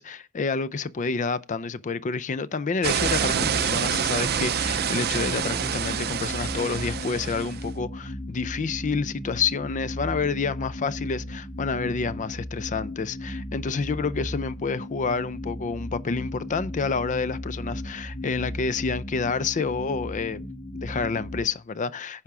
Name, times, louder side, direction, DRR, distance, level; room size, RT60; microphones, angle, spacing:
voice 1, 0.0-20.4 20.7-22.2, left 4 dB, 35° left, 0.4 m, -29 dB
sound 1, 2.8-7.6, right 8 dB, 45° right, 0.5 m, -27 dB
sound 2, 3.0-21.4, left 1 dB, 20° left, 1.8 m, -36 dB
10.0 x 4.8 x 5.9 m
head